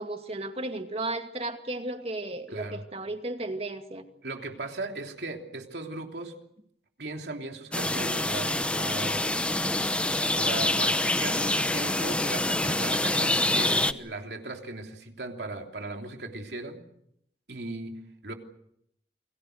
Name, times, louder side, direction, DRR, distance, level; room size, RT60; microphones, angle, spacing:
voice 1, 0.0-4.0, right 2 dB, 35° right, 6 dB, 2.3 m, -34 dB
voice 2, 2.5-2.8 4.2-6.3 7.0-10.0 10.3-16.8 17.5-18.3, right 2 dB, 70° right, 3 dB, 3.2 m, -38 dB
sound 1, 7.7-13.9, left 1 dB, 5° left, 0.9 m, -26 dB
29.5 x 23.0 x 6.6 m, 0.74 s
head